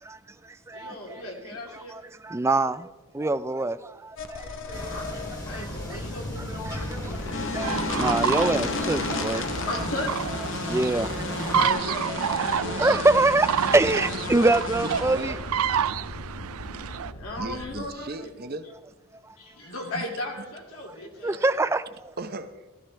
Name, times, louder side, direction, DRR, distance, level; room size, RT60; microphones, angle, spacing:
voice 1, 0.0-1.2 1.7-5.0 5.5-9.5 10.6-11.5 12.1-15.4 19.2-19.4 20.9-21.0 21.2-22.1, right 2 dB, 10° right, 0.3 m, -26 dB
voice 2, 0.7-1.9 4.6-7.5 9.6-10.1 11.5-12.8 16.6-18.3 19.4-21.4, left 2 dB, 75° left, 2.8 m, -37 dB
sound 1, 4.2-17.8, left 3 dB, 55° left, 0.9 m, -34 dB
sound 2, 4.7-11.7, equal, 15° left, 1.8 m, -37 dB
sound 3, 7.6-17.1, right 8 dB, 75° right, 0.4 m, -29 dB
voice 3, 14.8-15.4 17.4-18.7 19.7-20.1 22.2-22.7, right 2 dB, 45° right, 0.8 m, -37 dB
15.0 x 14.0 x 3.4 m
head